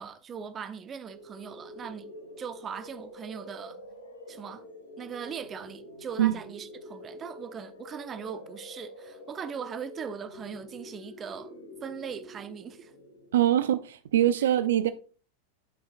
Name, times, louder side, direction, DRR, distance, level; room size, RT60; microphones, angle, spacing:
voice 1, 0.0-2.1 2.4-3.8 4.3-4.6 5.0-11.5 11.8-12.9, right 7 dB, 25° right, 0.6 m, -40 dB
sound 1, 1.1-13.9, left 1 dB, 80° left, 1.6 m, -47 dB
voice 2, 13.3-14.9, right 12 dB, 65° right, 0.3 m, -23 dB
9.1 x 5.6 x 2.4 m
figure-of-eight pair, 90°, 0 cm